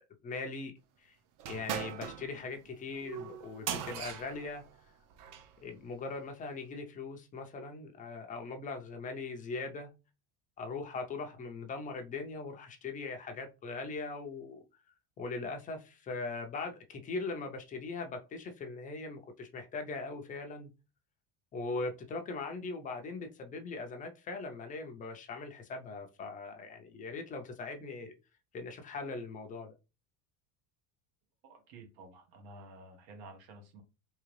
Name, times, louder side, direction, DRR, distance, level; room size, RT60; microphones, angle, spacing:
voice 1, 0.2-0.7 1.0-1.1 1.5-4.6 5.6-9.9 10.6-14.6 15.2-20.7 21.5-28.1 28.5-29.7, left 3 dB, 20° left, 0.4 m, -40 dB
sound 1, 1.4-5.5, right 9 dB, 45° right, 0.5 m, -40 dB
voice 2, 31.4-33.8, right 2 dB, 90° right, 1.3 m, -52 dB
3.7 x 2.9 x 3.1 m
cardioid pair, 160°, 45 cm